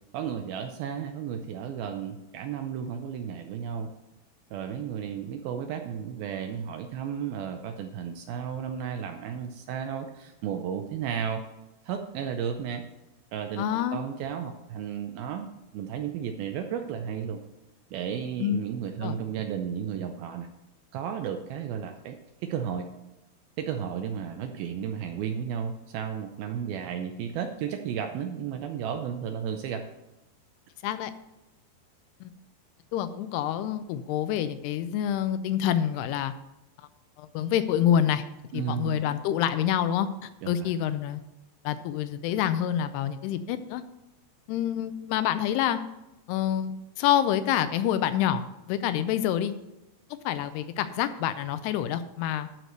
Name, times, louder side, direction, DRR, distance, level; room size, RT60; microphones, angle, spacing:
voice 1, 0.1-3.9 4.5-11.4 11.8-12.8 13.3-17.4 17.9-20.5 20.9-22.9 23.6-29.8 38.5-39.0 40.4-40.7, right 8 dB, 80° right, 6 dB, 2.2 m, -33 dB
voice 2, 13.6-14.0 18.4-18.6 19.0-19.2 30.8-31.1 32.2-32.3 32.9-36.3 37.2-38.2 38.5-41.2 41.6-43.8 44.5-45.8 46.3-48.4 48.7-49.5 50.3-52.5, left 10 dB, 80° left, 12 dB, 2.5 m, -27 dB
12.0 x 4.8 x 6.6 m, 0.95 s
omnidirectional pair, 4.8 m